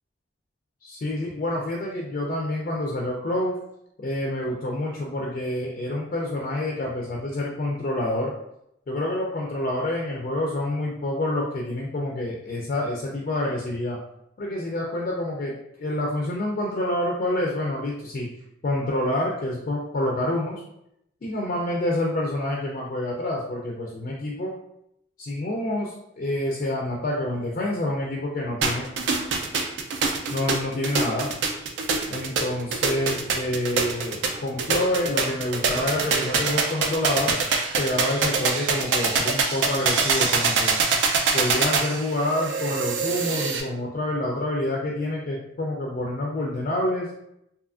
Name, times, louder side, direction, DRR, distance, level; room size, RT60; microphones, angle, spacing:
voice 1, 0.8-3.6 4.0-8.3 8.9-14.0 14.4-18.3 18.6-20.6 21.2-24.6 25.2-28.9 30.3-31.3 32.1-37.3 37.8-40.8 41.3-47.1, left 1 dB, 45° left, -2 dB, 0.3 m, -27 dB
sound 1, 28.6-43.6, right 4 dB, 75° right, 0.3 m, -24 dB
2.8 x 2.3 x 2.4 m, 0.80 s
head